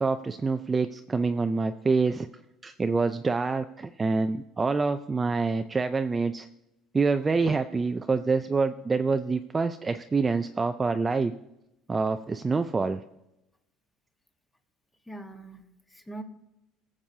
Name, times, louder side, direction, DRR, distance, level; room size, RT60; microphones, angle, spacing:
voice 1, 0.0-2.3 2.6-6.5 6.9-11.3 11.9-13.0, right 4 dB, 20° right, 8 dB, 0.4 m, -26 dB
voice 2, 15.1-16.2, right 2 dB, 10° left, 5 dB, 1.3 m, -42 dB
19.0 x 7.3 x 2.8 m, 0.90 s
cardioid pair, 115°, 0 cm